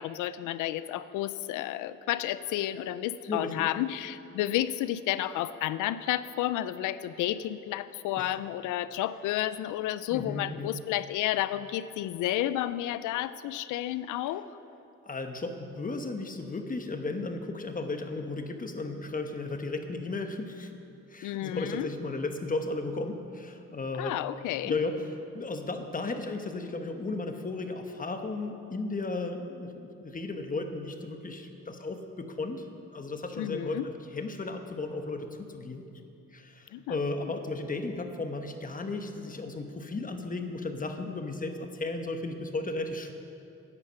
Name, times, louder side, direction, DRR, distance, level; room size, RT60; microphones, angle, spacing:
voice 1, 0.0-14.5 21.2-21.9 24.0-24.8 33.4-33.8 36.7-36.9 37.2-37.3, left 13 dB, 85° left, 14 dB, 0.5 m, -31 dB
voice 2, 3.3-3.7 8.2-8.3 10.1-10.7 15.0-20.7 21.1-24.2 24.6-32.6 32.9-35.8 36.3-43.1, left 3 dB, 25° left, 5 dB, 1.1 m, -35 dB
10.5 x 9.8 x 6.8 m, 2.7 s
cardioid pair, 90°, 30 cm